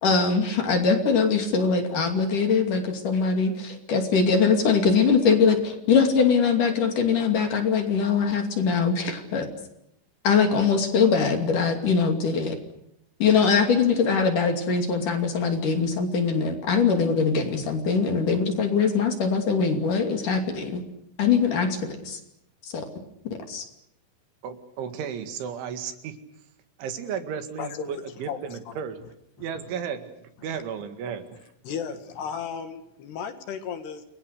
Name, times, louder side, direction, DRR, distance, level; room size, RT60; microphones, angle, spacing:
voice 1, 0.0-9.5 10.2-12.6 13.2-20.8 21.2-22.2 22.7-22.8 23.5-23.6, left 5 dB, 50° left, 5 dB, 3.8 m, -22 dB
voice 2, 24.4-26.2 26.8-29.0 29.4-31.4, right 7 dB, 80° right, 8 dB, 4.4 m, -34 dB
voice 3, 27.6-28.8 30.5-30.6 31.6-34.0, left 7 dB, 65° left, 8 dB, 3.7 m, -35 dB
29.0 x 22.5 x 6.7 m, 0.78 s
omnidirectional pair, 5.4 m